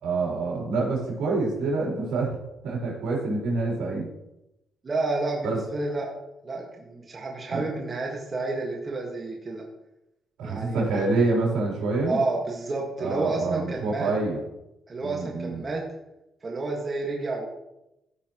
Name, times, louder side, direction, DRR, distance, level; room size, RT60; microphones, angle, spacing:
voice 1, 0.0-2.4 2.6-4.1 5.4-5.6 7.5-7.6 10.4-12.2 13.0-14.4 15.0-15.6, right 3 dB, 85° right, -3 dB, 3.5 m, -26 dB
voice 2, 4.8-6.1 6.4-9.6 10.4-11.0 12.0-14.1 14.9-15.8 16.4-17.5, right 3 dB, 35° right, -1 dB, 1.6 m, -30 dB
14.0 x 5.8 x 3.0 m, 0.89 s
cardioid pair, 90°, 0 cm